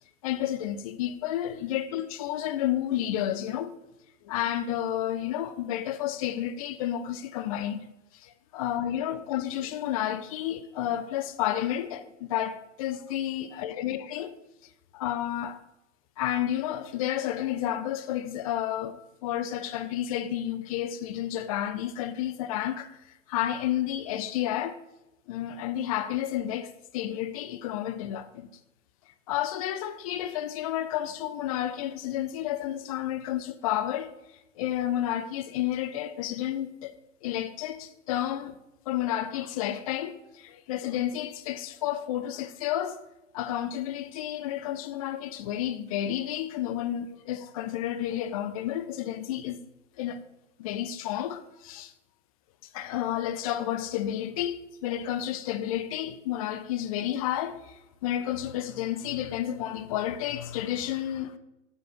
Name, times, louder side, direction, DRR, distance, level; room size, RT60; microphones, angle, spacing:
voice 1, 0.2-3.8 4.2-7.9 8.1-14.4 14.9-15.6 16.2-23.0 23.3-24.8 25.3-28.5 29.3-34.1 34.6-37.0 37.2-38.5 38.9-43.0 43.3-49.6 50.0-50.2 50.6-51.9 52.7-61.4, left 11 dB, 30° left, 0.4 m, -31 dB
6.7 x 4.6 x 4.5 m
figure-of-eight pair, 100°, 38 cm